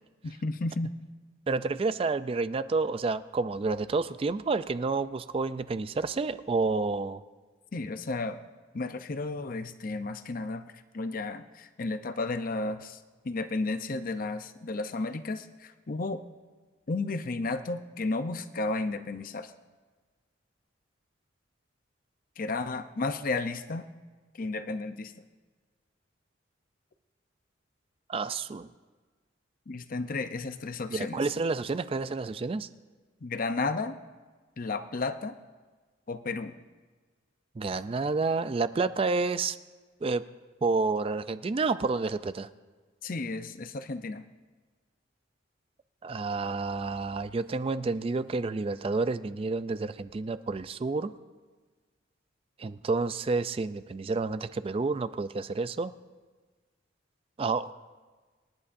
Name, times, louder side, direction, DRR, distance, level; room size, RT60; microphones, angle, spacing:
voice 1, 0.2-0.9 7.7-8.4 8.7-13.0 13.2-16.2 16.9-19.5 22.4-23.9 24.3-25.1 29.7-31.2 33.2-34.0 34.6-35.4 36.1-36.5 43.0-44.2, left 3 dB, 45° left, 9 dB, 0.6 m, -33 dB
voice 2, 1.5-7.2 28.1-28.7 30.9-32.7 37.6-39.6 40.0-40.2 40.6-42.5 46.0-51.1 52.6-55.9 57.4-57.7, right 3 dB, 30° right, 13 dB, 0.3 m, -29 dB
26.0 x 11.0 x 2.6 m, 1.4 s
head